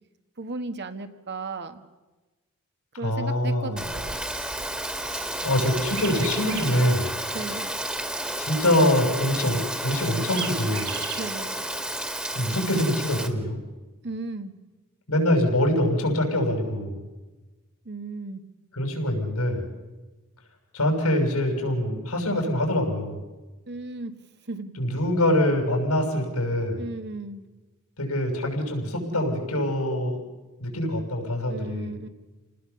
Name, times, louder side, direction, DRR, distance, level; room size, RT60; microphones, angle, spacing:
voice 1, 0.4-1.8 3.0-4.2 7.3-7.7 11.2-11.6 14.0-14.5 17.8-18.4 23.7-24.1 24.5-24.8 26.8-27.4 31.5-32.1, right 3 dB, 50° right, 8 dB, 1.5 m, -35 dB
voice 2, 3.0-3.8 5.4-7.2 8.4-10.9 12.3-13.6 15.1-17.0 18.7-19.6 20.7-23.2 24.8-26.8 28.0-30.2 30.6-31.9, left 1 dB, 85° left, 4 dB, 6.3 m, -24 dB
Rain, 3.8-13.3, right 1 dB, 5° right, 1.9 m, -31 dB
sound 1, 4.6-6.8 9.9-11.3, right 7 dB, 70° right, 4.1 m, -38 dB
29.0 x 19.5 x 7.0 m, 1.2 s
head